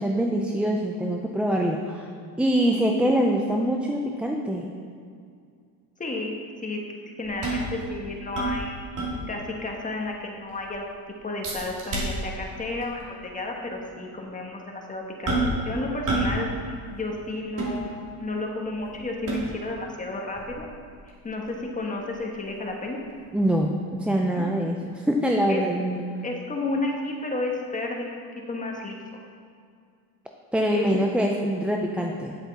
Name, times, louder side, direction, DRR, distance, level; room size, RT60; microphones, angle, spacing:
voice 1, 0.0-2.1 2.4-4.7 23.3-26.0 30.5-32.4, equal, 5° right, 0 dB, 0.3 m, -24 dB
voice 2, 6.0-8.8 9.3-20.7 21.2-23.0 24.3-24.5 25.5-25.6 26.2-28.2 28.5-29.0 30.7-30.9, left 2 dB, 15° left, 0 dB, 1.3 m, -32 dB
sound 1, 7.2-9.5 9.9-10.0 10.4-10.8 11.4-12.5 12.8-13.0 13.7-13.8 15.3-15.7 16.1-16.4 16.7-18.3 18.8-19.7 20.3-23.1 23.5-23.6, right 2 dB, 45° right, 2.6 m, -30 dB
9.5 x 7.9 x 4.1 m, 2.2 s
cardioid pair, 120°, 44 cm